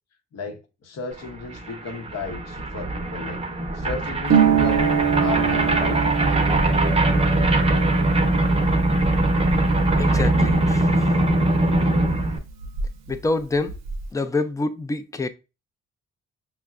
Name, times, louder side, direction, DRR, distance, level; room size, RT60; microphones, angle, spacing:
voice 1, 0.3-3.4 3.7-6.0, left 4 dB, 60° left, 0.8 m, -34 dB
sound 1, 1.2-1.3 1.5-12.4, right 2 dB, 20° right, 0.7 m, -21 dB
Harp, 4.3-11.8 12.0-13.1 13.4-14.0, right 7 dB, 60° right, 0.6 m, -26 dB
voice 2, 10.0-11.1 13.1-13.8 14.1-15.3, left 2 dB, 10° left, 0.4 m, -26 dB
5.5 x 2.1 x 2.4 m
supercardioid pair, 65°, 29 cm